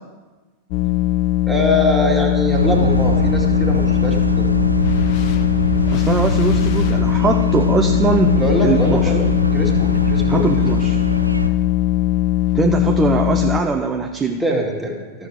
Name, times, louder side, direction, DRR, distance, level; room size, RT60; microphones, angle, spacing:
sound 1, 0.7-13.6, left 14 dB, 45° left, 0.6 m, -19 dB
voice 1, 1.5-4.5 8.3-10.5 14.4-15.3, equal, ahead, -2 dB, 2.0 m, -23 dB
sound 2, 2.5-11.5, right 3 dB, 85° right, 0.5 m, -22 dB
voice 2, 5.9-9.1 10.2-11.0 12.5-14.4, right 4 dB, 20° right, 4 dB, 0.6 m, -21 dB
13.5 x 6.8 x 4.7 m, 1.3 s
figure-of-eight pair, 90°, 0 cm